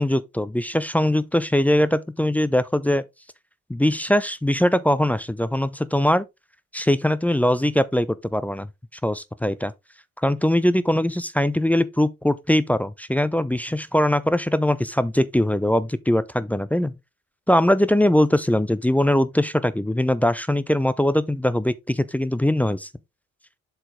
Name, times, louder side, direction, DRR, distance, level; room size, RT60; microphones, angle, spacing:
voice 1, 0.0-3.0 3.7-6.3 6.7-8.7 9.0-9.7 10.2-16.9 17.5-22.9, left 1 dB, 5° left, 0.4 m, -21 dB
7.5 x 4.6 x 3.6 m
figure-of-eight pair, 45°, 37 cm